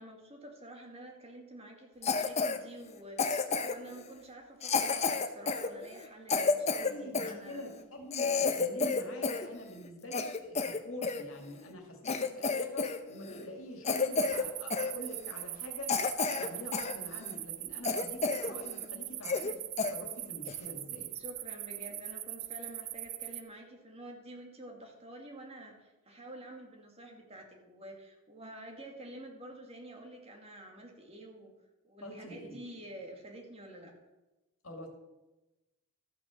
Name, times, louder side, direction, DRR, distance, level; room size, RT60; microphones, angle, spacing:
voice 1, 0.0-7.6 21.1-31.5 31.8-33.9, right 1 dB, 30° right, 1 dB, 2.1 m, -49 dB
Cough, 2.0-2.6 3.2-3.9 4.6-7.3 7.8-7.9 8.1-9.5 9.8-11.2 11.7-11.8 12.1-13.0 13.2-13.5 13.8-14.5 14.7-14.9 15.4-15.5 15.9-16.9 17.3-17.4 17.8-18.5 18.8-18.9 19.2-19.5 19.8-19.9 20.5-20.7, left 4 dB, 30° left, 0.7 m, -30 dB
voice 2, 6.8-16.0 16.4-19.6 19.9-21.1 32.0-32.6 34.6-34.9, left 1 dB, 60° left, 2 dB, 2.4 m, -45 dB
sound 1, 14.1-23.4, right 14 dB, 70° right, 0.6 m, -41 dB
13.5 x 6.2 x 6.4 m, 1.0 s
head